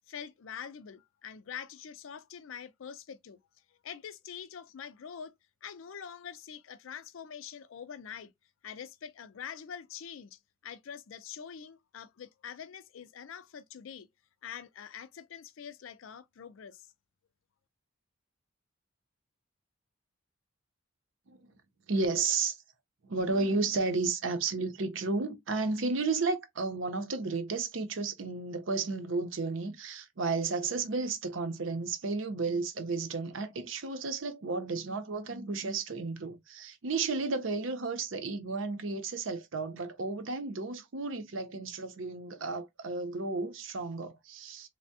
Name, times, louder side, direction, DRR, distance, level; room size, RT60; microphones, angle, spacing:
voice 1, 0.1-3.4 3.8-5.3 5.6-8.3 8.6-14.1 14.4-16.9, left 7 dB, 75° left, 0.4 m, -45 dB
voice 2, 21.3-21.6 21.9-22.6 23.0-44.7, right 3 dB, 70° right, 0.7 m, -33 dB
3.3 x 2.1 x 2.6 m
head